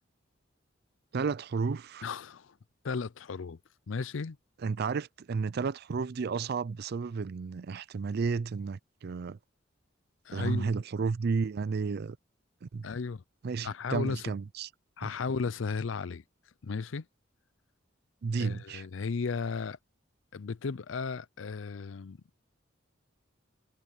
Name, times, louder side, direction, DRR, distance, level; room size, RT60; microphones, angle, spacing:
voice 1, 1.1-2.1 4.6-9.4 10.3-12.2 12.6-12.9 13.4-14.7 15.0-15.1 18.2-18.8, right 5 dB, 55° right, 0.4 m, -32 dB
voice 2, 2.0-2.6 2.8-3.6 3.9-4.4 10.3-10.7 12.8-13.2 13.6-14.4 15.0-16.2 16.6-17.1 18.4-19.8 20.3-22.2, left 5 dB, 80° left, 0.5 m, -35 dB
head